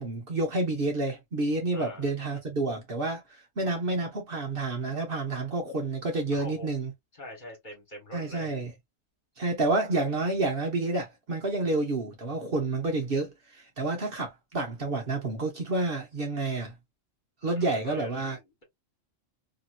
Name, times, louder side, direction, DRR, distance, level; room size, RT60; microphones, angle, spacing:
voice 1, 0.0-6.9 8.1-8.7 9.4-16.8 17.4-18.4, right 2 dB, 50° right, 1.0 m, -29 dB
voice 2, 1.7-2.1 6.3-6.7 7.1-8.6 17.6-18.6, equal, 35° left, 1.7 m, -43 dB
3.0 x 2.8 x 2.5 m
omnidirectional pair, 1.3 m